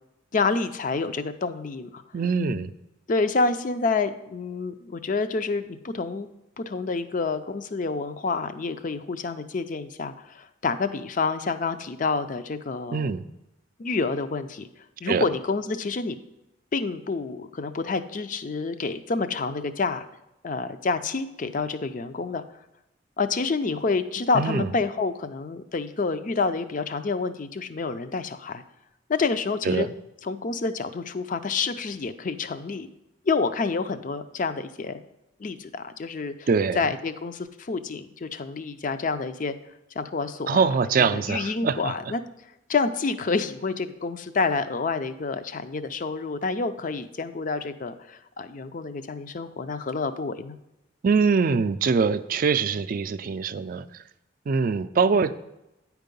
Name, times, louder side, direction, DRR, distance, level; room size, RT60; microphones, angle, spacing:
voice 1, 0.3-2.0 3.1-6.3 6.6-13.1 13.8-14.7 15.0-16.2 16.7-20.1 20.4-22.4 23.2-28.6 29.1-29.9 30.2-32.9 33.3-35.0 35.4-36.5 36.7-39.5 40.0-40.7 41.0-42.2 42.7-50.6, left 4 dB, 45° left, 11 dB, 0.5 m, -28 dB
voice 2, 2.1-2.7 12.9-13.2 15.1-15.2 24.3-24.7 29.6-29.9 36.5-36.8 40.5-41.9 51.0-53.8 54.5-55.3, right 5 dB, 45° right, 12 dB, 0.4 m, -23 dB
9.7 x 4.7 x 5.3 m, 0.89 s
head